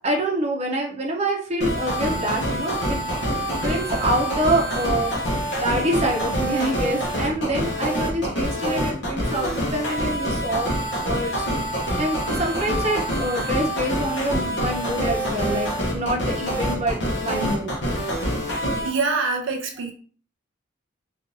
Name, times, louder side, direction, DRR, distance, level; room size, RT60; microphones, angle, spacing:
voice 1, 0.0-3.0 3.4-10.7 11.0-11.5 12.0-17.7, right 1 dB, 35° right, 0 dB, 0.7 m, -26 dB
sound 1, 1.6-18.9, equal, 60° left, 1.0 m, -26 dB
voice 2, 18.8-19.9, right 4 dB, 75° right, 3 dB, 0.5 m, -24 dB
3.6 x 2.5 x 2.7 m, 0.43 s
head